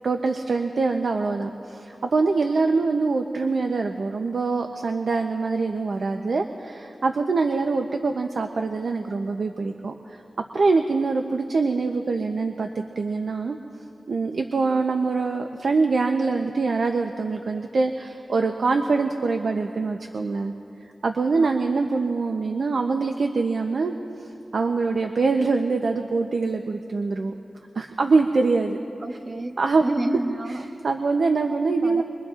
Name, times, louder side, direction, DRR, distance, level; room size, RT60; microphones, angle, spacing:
voice 1, 0.0-10.2 10.5-13.6 14.1-20.5 21.0-24.0 24.5-27.3 27.8-28.8 29.6-29.8 30.8-32.0, right 4 dB, 75° right, 5 dB, 0.7 m, -24 dB
voice 2, 29.0-29.6 29.8-30.6 31.8-32.0, right 1 dB, 35° right, 7 dB, 0.8 m, -29 dB
25.5 x 22.5 x 2.5 m, 2.7 s
wide cardioid pair, 80°, 0 cm